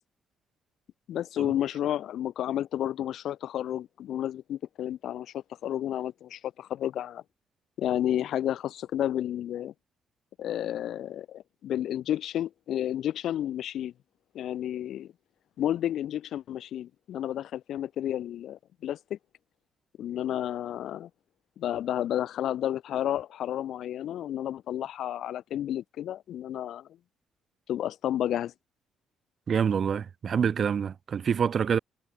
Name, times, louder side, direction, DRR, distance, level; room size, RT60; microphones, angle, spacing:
voice 1, 1.1-7.2 7.8-9.7 10.4-13.9 14.3-15.1 15.6-19.2 20.0-21.1 21.6-26.9 27.7-28.5, left 11 dB, 75° left, 1.7 m, -31 dB
voice 2, 29.5-31.8, right 7 dB, 50° right, 0.4 m, -26 dB
cardioid pair, 90°, 0 cm